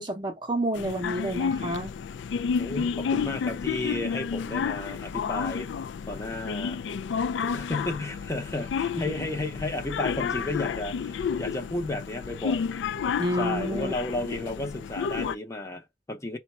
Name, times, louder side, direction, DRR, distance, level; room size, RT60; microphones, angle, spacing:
voice 1, 0.0-1.9 3.1-3.3 13.2-13.9, right 1 dB, 25° right, 0.7 m, -29 dB
sound 1, 0.7-15.3, left 6 dB, 75° left, 0.3 m, -31 dB
voice 2, 2.6-5.7 6.1-6.8 7.4-12.7 13.4-16.4, left 2 dB, 15° left, 0.7 m, -33 dB
5.0 x 2.2 x 4.2 m
head